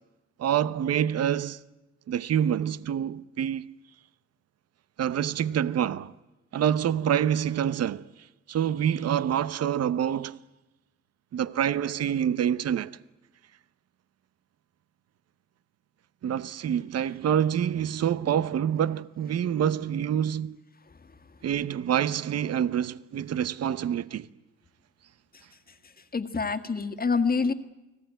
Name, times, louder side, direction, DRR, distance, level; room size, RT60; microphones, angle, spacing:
voice 1, 0.4-1.6 2.1-3.7 5.0-6.1 6.5-8.1 8.5-10.4 11.3-12.9 16.2-20.6 21.4-24.3, right 9 dB, 55° right, 0.9 m, -26 dB
voice 2, 26.1-27.5, left 4 dB, 30° left, 1.8 m, -26 dB
29.5 x 19.5 x 9.2 m
cardioid pair, 90°, 30 cm